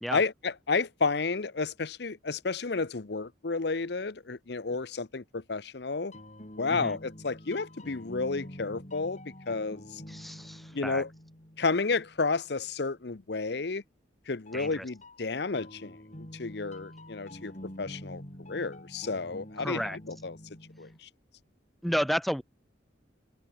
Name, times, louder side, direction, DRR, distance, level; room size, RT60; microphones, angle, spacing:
voice 1, 0.1-6.1 6.6-9.2 9.5-10.0 10.7-11.1 11.6-13.8 14.3-16.0 16.3-17.5 17.8-18.2 18.5-20.4 20.8-21.1, left 4 dB, 60° left, 0.8 m, -31 dB
sound 1, 5.9-12.6 14.5-21.0, left 1 dB, 40° left, 4.4 m, -47 dB
voice 2, 10.1-11.0 14.5-14.8 19.6-20.0 21.8-22.4, equal, ahead, 0.5 m, -32 dB
head